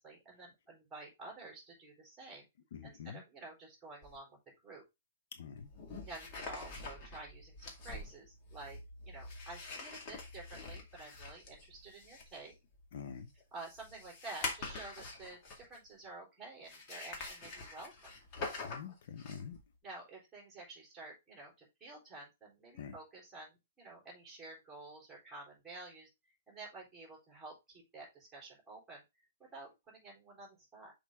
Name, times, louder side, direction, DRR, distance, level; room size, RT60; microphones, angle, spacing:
voice 1, 0.0-2.5 2.8-4.8 6.0-8.8 9.0-12.5 13.5-18.1 19.8-26.1 26.5-29.0 29.5-30.9, right 2 dB, 10° right, 3.8 m, -50 dB
voice 2, 2.7-3.2 5.3-5.7 12.9-13.3 18.6-19.6 22.8-23.0, left 7 dB, 55° left, 0.9 m, -46 dB
sound 1, 4.0-4.2 5.6-15.9 16.6-19.6, left 3 dB, 30° left, 2.1 m, -45 dB
6.3 x 5.0 x 3.6 m
hypercardioid pair, 165°, 0 cm